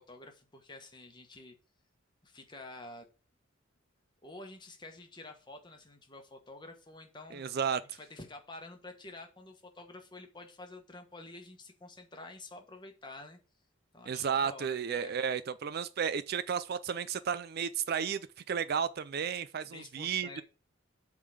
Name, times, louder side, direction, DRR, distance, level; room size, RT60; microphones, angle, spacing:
voice 1, 0.0-1.6 2.2-3.1 4.2-7.4 7.9-13.4 13.9-15.2 19.7-20.4, left 2 dB, 20° left, 1.3 m, -49 dB
voice 2, 7.3-8.0 14.1-20.4, right 7 dB, 50° right, 0.4 m, -33 dB
8.0 x 3.7 x 6.7 m
head